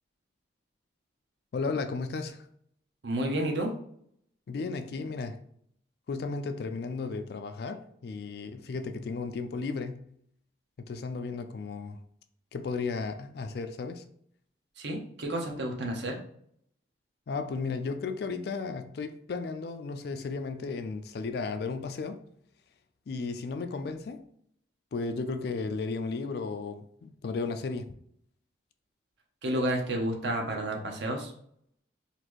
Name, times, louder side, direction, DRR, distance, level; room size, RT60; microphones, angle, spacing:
voice 1, 1.5-2.5 4.5-5.4 6.1-10.1 10.8-12.0 12.5-14.0 17.3-22.2 23.1-24.3 24.9-28.0, left 4 dB, 55° left, 0.3 m, -34 dB
voice 2, 3.0-3.7 14.8-16.2 29.4-31.3, right 1 dB, 65° right, 0.8 m, -30 dB
4.1 x 2.6 x 3.0 m
head